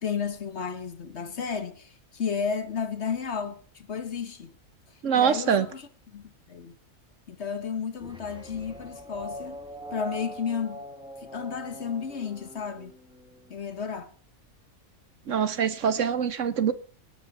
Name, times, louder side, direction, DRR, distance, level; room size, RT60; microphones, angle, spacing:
voice 1, 0.0-4.5 5.1-6.7 7.3-9.6 9.9-10.8 11.2-12.9 13.5-14.1, left 6 dB, 50° left, 1.5 m, -33 dB
voice 2, 5.0-5.7 15.3-16.7, right 8 dB, 65° right, 1.2 m, -24 dB
sound 1, 8.0-13.5, right 1 dB, 5° right, 1.7 m, -42 dB
19.0 x 9.9 x 6.0 m
omnidirectional pair, 1.5 m